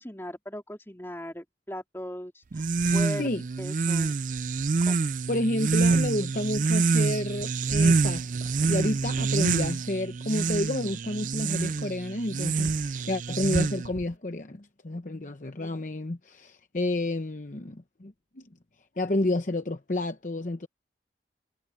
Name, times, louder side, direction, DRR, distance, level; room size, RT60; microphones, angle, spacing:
voice 1, 0.0-3.3 3.6-4.2 4.8-5.1, equal, 15° left, 3.9 m, -38 dB
sound 1, 2.5-14.0, right 4 dB, 45° right, 0.4 m, -26 dB
voice 2, 5.3-18.4 19.0-20.7, left 1 dB, 45° left, 0.9 m, -30 dB
head